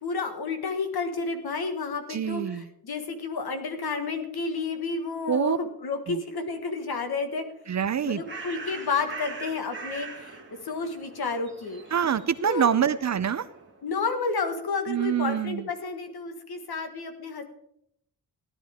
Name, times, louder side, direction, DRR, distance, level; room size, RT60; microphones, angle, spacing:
voice 1, 0.0-7.4 8.1-10.4 10.6-11.8 12.4-12.7 13.8-17.4, left 4 dB, 70° left, 6 dB, 1.7 m, -31 dB
voice 2, 2.1-2.7 5.3-5.6 6.1-6.2 7.7-8.2 11.9-13.5 14.9-15.7, right 8 dB, 45° right, 15 dB, 0.5 m, -25 dB
Bird, 7.7-13.8, right 4 dB, 30° right, 2.1 m, -42 dB
16.0 x 11.0 x 3.6 m, 0.75 s
wide cardioid pair, 170°, 39 cm